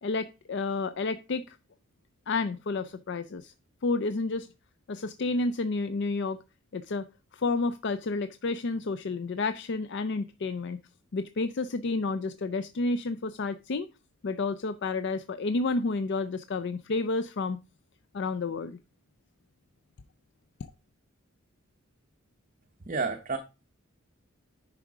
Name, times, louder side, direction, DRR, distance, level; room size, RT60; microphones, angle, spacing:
voice 1, 0.0-1.6 2.3-3.5 3.8-4.5 4.9-6.4 6.7-7.1 7.3-10.8 11.1-13.9 14.2-17.6 18.1-18.8, left 3 dB, 55° left, 0.4 m, -30 dB
voice 2, 22.9-23.4, right 4 dB, 40° right, 0.7 m, -30 dB
10.0 x 4.9 x 4.7 m
head